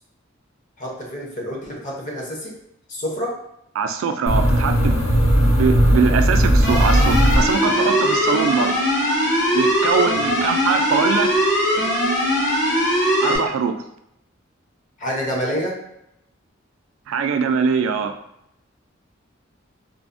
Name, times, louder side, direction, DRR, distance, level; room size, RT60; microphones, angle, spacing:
voice 1, 0.8-2.5 2.9-3.3 10.1-10.4 15.0-15.8, equal, 40° left, -2 dB, 0.7 m, -28 dB
voice 2, 3.7-5.0 5.5-8.8 9.5-11.3 13.2-13.8 17.1-18.2, right 6 dB, 85° right, 8 dB, 0.3 m, -22 dB
sound 1, 4.3-8.0, equal, 85° left, 0.8 m, -17 dB
sound 2, 6.6-13.4, equal, 60° left, 1.1 m, -20 dB
3.3 x 2.0 x 2.5 m, 0.79 s
head